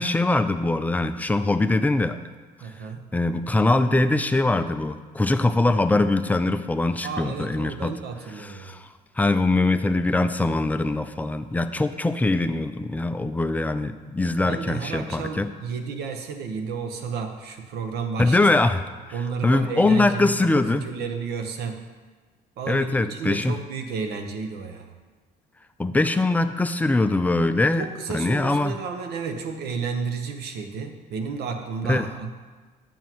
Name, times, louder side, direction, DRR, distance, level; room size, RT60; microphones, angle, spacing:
voice 1, 0.0-2.2 3.1-7.9 8.4-8.9 9.2-15.5 18.2-18.8 19.4-20.9 22.7-23.6 25.8-27.8 28.1-28.8 31.9-32.1, left 2 dB, 10° left, 9 dB, 0.3 m, -22 dB
voice 2, 2.6-3.0 7.0-8.8 14.4-18.4 19.1-21.8 22.6-24.9 27.7-32.3, right 5 dB, 75° right, 5 dB, 0.9 m, -32 dB
9.1 x 7.3 x 3.0 m, 1.3 s
cardioid pair, 110°, 17 cm